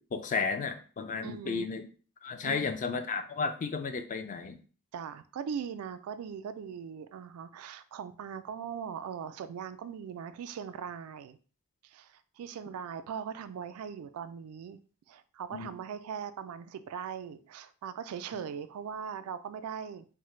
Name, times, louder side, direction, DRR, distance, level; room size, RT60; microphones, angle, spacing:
voice 1, 0.1-1.9 2.2-4.6 15.5-15.7 18.3-18.4, left 5 dB, 35° left, 8 dB, 0.3 m, -33 dB
voice 2, 1.2-1.7 2.4-2.7 4.9-11.4 11.8-14.8 15.1-20.1, right 7 dB, 75° right, 14 dB, 0.3 m, -40 dB
3.2 x 2.0 x 3.0 m, 0.39 s
head